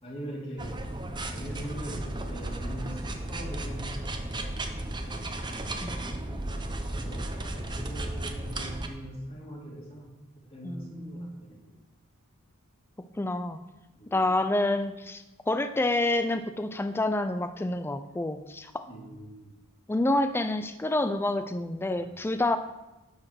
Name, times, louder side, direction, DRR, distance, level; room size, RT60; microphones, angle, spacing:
voice 1, 0.0-0.8 1.3-5.3 6.1-6.4 6.9-11.7 14.0-14.3 18.9-19.5 21.9-22.0, right 1 dB, 25° left, -3 dB, 2.5 m, -42 dB
sound 1, 0.6-8.9, right 1 dB, 20° right, 0.8 m, -34 dB
voice 2, 10.6-11.3 13.2-13.6 14.1-18.9 19.9-22.6, left 2 dB, 10° left, 9 dB, 0.4 m, -28 dB
12.0 x 4.9 x 6.2 m, 1.0 s
head